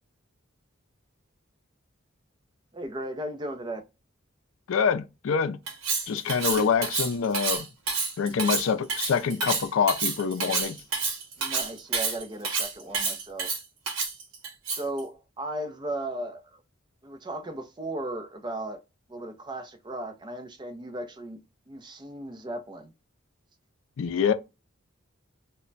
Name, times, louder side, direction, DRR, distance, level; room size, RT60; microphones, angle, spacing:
voice 1, 2.7-3.8 11.4-13.5 14.8-16.6 17.0-18.8 19.1-21.4 21.7-22.9, right 1 dB, 20° right, 0.4 m, -36 dB
voice 2, 4.7-5.6 6.1-7.7 8.2-10.8 24.0-24.3, left 6 dB, 70° left, 0.4 m, -25 dB
Cutlery silverware, 5.7-15.0, right 4 dB, 85° right, 0.9 m, -29 dB
2.2 x 2.1 x 3.8 m
head